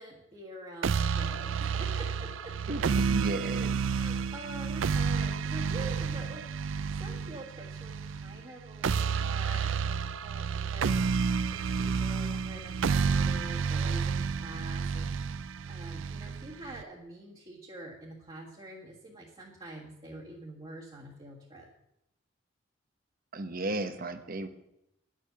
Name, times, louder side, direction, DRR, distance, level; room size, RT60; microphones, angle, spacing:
voice 1, 0.0-2.5 3.9-21.7, right 1 dB, 30° right, -4 dB, 1.7 m, -46 dB
sound 1, 0.8-16.8, right 5 dB, 70° right, 0.4 m, -30 dB
voice 2, 2.7-3.8 23.3-24.5, right 2 dB, 45° right, 10 dB, 0.9 m, -34 dB
11.0 x 7.7 x 6.9 m, 0.84 s
head